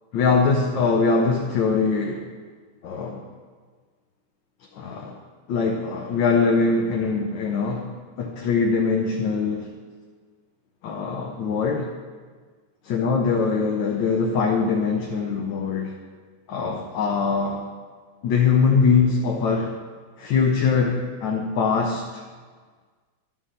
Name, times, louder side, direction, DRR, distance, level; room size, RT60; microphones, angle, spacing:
voice 1, 0.1-2.3 2.8-3.2 4.8-5.2 5.5-9.7 10.8-11.9 12.9-15.9 16.5-17.7 18.2-19.8 20.2-22.2, left 5 dB, 70° left, 1 dB, 1.5 m, -22 dB
11.5 x 5.6 x 6.3 m, 1.5 s
omnidirectional pair, 2.2 m